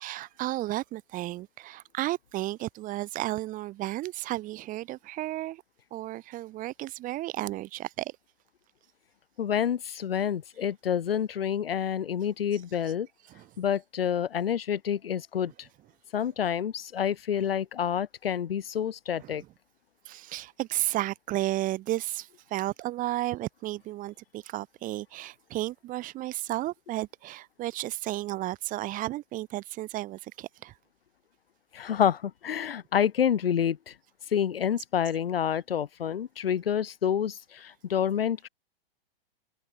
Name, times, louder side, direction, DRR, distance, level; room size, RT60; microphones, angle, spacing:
voice 1, 0.0-5.6 5.9-8.1 13.3-13.5 19.2-19.3 20.0-30.7, right 16 dB, 30° right, 1.6 m, -33 dB
voice 2, 9.4-13.1 13.6-15.5 16.1-19.4 31.7-33.9 34.3-38.5, left 9 dB, 80° left, 1.1 m, -28 dB
open air
hypercardioid pair, 120°, 29 cm